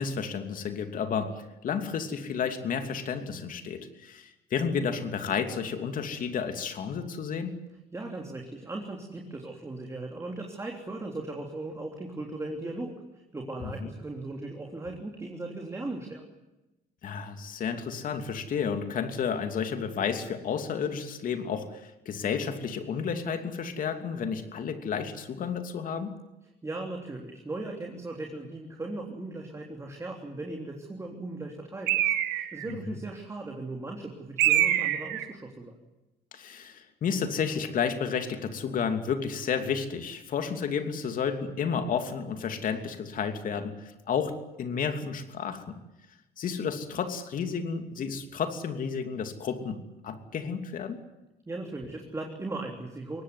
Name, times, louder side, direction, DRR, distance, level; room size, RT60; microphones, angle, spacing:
voice 1, 0.0-7.6 13.6-13.7 17.0-26.2 32.7-33.0 36.3-45.8 46.4-51.0, left 6 dB, 55° left, 7 dB, 2.9 m, -31 dB
voice 2, 7.9-16.2 26.6-35.8 51.5-53.2, right 2 dB, 15° right, 1 dB, 3.4 m, -38 dB
Bird, 31.9-32.7 34.4-35.3, right 13 dB, 90° right, 1.7 m, -25 dB
22.5 x 19.0 x 9.7 m, 0.98 s
cardioid pair, 110°, 17 cm